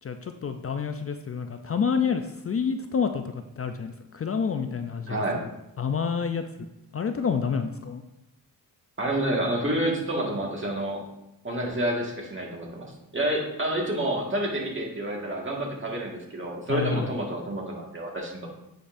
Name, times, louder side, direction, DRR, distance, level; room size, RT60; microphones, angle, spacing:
voice 1, 0.0-5.5 5.8-6.4 6.9-8.0 16.7-17.1, left 6 dB, 40° left, 7 dB, 0.5 m, -28 dB
voice 2, 5.1-5.4 9.0-11.0 11.4-12.9 13.1-18.5, right 1 dB, 35° right, -1 dB, 1.8 m, -29 dB
8.7 x 5.1 x 2.6 m, 0.87 s
cardioid pair, 70°, 35 cm